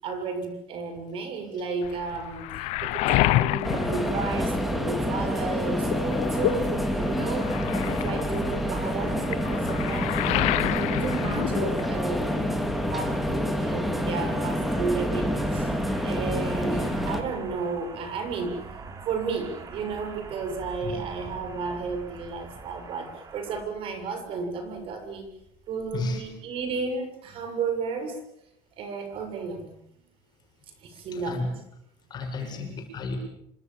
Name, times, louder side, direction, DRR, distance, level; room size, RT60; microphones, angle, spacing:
voice 1, 0.0-7.6 7.8-10.2 10.5-12.6 12.9-15.8 16.0-18.6 19.1-25.3 25.7-28.2 28.7-29.7 30.8-31.4 32.2-32.7, right 4 dB, 50° right, 7 dB, 6.9 m, -33 dB
Waves surf, 1.8-5.0 5.4-12.3 12.6-13.5, left 18 dB, 65° left, 1.0 m, -29 dB
sound 1, 3.6-17.2, equal, ahead, 3.4 m, -27 dB
sound 2, 11.7-26.3, right 4 dB, 30° right, 3.6 m, -45 dB
voice 2, 31.1-31.5 32.1-33.2, left 3 dB, 35° left, 3 dB, 7.6 m, -32 dB
27.5 x 25.0 x 7.4 m, 0.76 s
cardioid pair, 145°, 12 cm